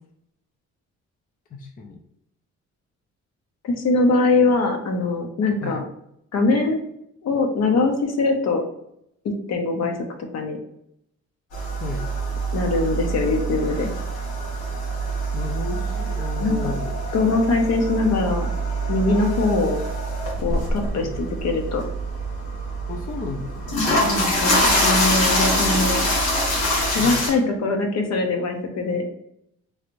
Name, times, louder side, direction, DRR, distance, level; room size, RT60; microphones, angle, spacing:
voice 1, 1.5-2.0 5.6-5.8 11.8-12.0 15.3-17.0 21.0-21.1 22.9-23.8 27.0-27.2, left 4 dB, 30° left, 3 dB, 0.4 m, -33 dB
voice 2, 3.6-5.8 6.3-6.9 7.2-8.6 9.2-10.0 10.3-10.6 12.5-13.9 16.4-16.7 17.1-18.5 18.9-19.8 20.4-21.8 24.0-26.0 26.9-29.0, left 3 dB, 60° left, 4 dB, 0.8 m, -22 dB
sound 1, 11.5-27.3, right 1 dB, 85° left, 1.2 m, -24 dB
3.1 x 2.5 x 3.0 m, 0.76 s
cardioid pair, 90°, 30 cm